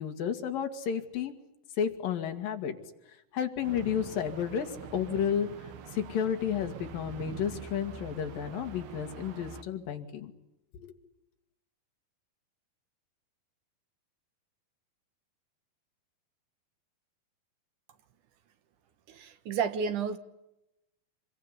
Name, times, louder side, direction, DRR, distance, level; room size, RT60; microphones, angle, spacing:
voice 1, 0.0-1.3 1.8-2.8 3.3-5.7 5.9-10.3 10.7-10.9, left 8 dB, 70° left, 4 dB, 3.7 m, -32 dB
sound 1, 3.6-9.6, right 7 dB, 80° right, 3.5 m, -45 dB
voice 2, 19.1-20.2, right 6 dB, 65° right, 10 dB, 2.5 m, -31 dB
26.5 x 22.0 x 9.8 m, 0.90 s
omnidirectional pair, 4.3 m